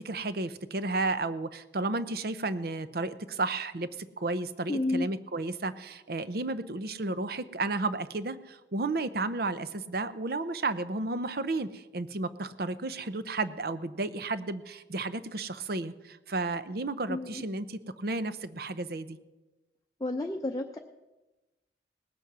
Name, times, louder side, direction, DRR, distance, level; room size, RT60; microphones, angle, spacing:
voice 1, 0.0-19.2, right 2 dB, 60° right, 13 dB, 0.7 m, -33 dB
voice 2, 4.7-5.1 17.1-17.4 20.0-20.8, left 2 dB, 20° left, 3 dB, 0.6 m, -31 dB
19.0 x 8.4 x 6.1 m, 1.1 s
head